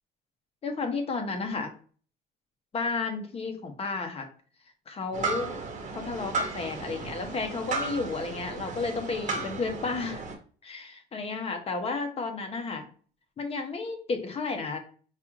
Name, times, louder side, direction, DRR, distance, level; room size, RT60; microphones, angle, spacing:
voice 1, 0.6-1.7 2.7-4.3 4.9-5.6 5.9-10.2 10.6-12.9 13.4-14.8, left 4 dB, 35° left, 5 dB, 0.8 m, -32 dB
sound 1, 5.1-10.3, right 4 dB, 45° right, 1.1 m, -34 dB
4.8 x 2.4 x 3.1 m, 0.43 s
cardioid pair, 110°, 17 cm